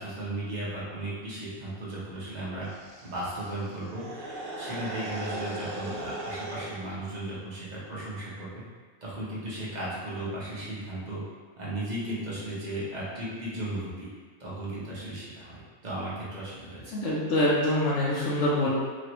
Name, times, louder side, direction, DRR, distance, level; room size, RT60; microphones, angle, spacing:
voice 1, 0.0-2.7 3.0-4.0 4.6-8.6 9.0-11.2 11.6-14.1 14.4-17.0, right 1 dB, 35° right, -8 dB, 0.8 m, -35 dB
sound 1, 2.6-6.8, right 1 dB, 80° right, 0.4 m, -38 dB
voice 2, 16.9-18.7, left 1 dB, 65° left, -7 dB, 0.9 m, -25 dB
3.1 x 2.5 x 2.9 m, 1.5 s
omnidirectional pair, 1.5 m